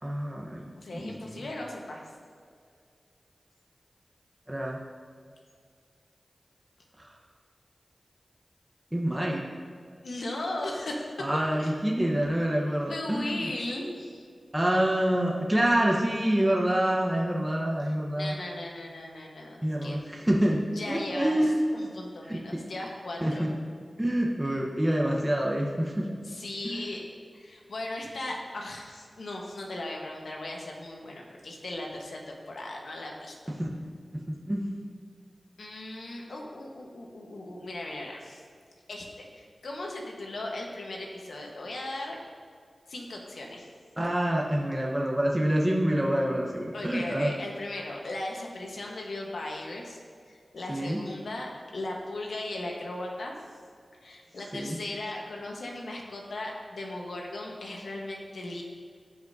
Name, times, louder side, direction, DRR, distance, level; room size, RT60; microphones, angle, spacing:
voice 1, 0.0-1.5 4.5-4.8 7.0-7.1 8.9-9.5 11.2-13.5 14.5-18.4 19.6-21.6 22.2-22.7 23.2-23.5 24.0-26.1 26.6-26.9 33.5-33.7 34.1-34.7 44.0-47.3 50.7-51.0 54.5-54.8, right 1 dB, 15° right, -2 dB, 1.1 m, -27 dB
voice 2, 0.8-2.0 10.0-11.1 11.6-11.7 12.9-14.2 17.8-17.9 18.1-20.0 20.8-23.5 26.2-27.0 27.3-33.3 35.6-38.4 38.9-42.2 42.9-43.7 46.7-50.0 50.3-53.3 54.0-58.6, left 1 dB, 85° left, 0 dB, 1.2 m, -37 dB
15.5 x 5.1 x 2.7 m, 2.1 s
cardioid pair, 45°, 0 cm